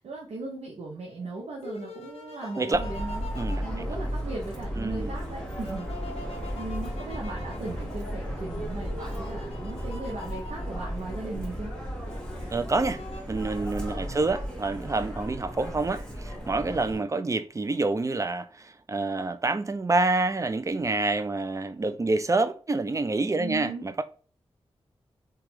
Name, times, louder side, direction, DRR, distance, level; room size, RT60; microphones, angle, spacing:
voice 1, 0.0-5.9 6.5-11.7 13.9-14.3 23.4-23.9, right 2 dB, 85° right, 0.6 m, -38 dB
sound 1, 1.1-4.6 5.1-11.3 12.1-13.2, left 1 dB, 65° left, 0.8 m, -44 dB
Subway metro underground, 2.7-17.0, equal, 5° left, 1.4 m, -35 dB
voice 2, 4.8-5.1 12.5-13.0 13.3-24.0, right 3 dB, 30° right, 0.4 m, -27 dB
2.9 x 2.3 x 3.1 m
cardioid pair, 45°, 11 cm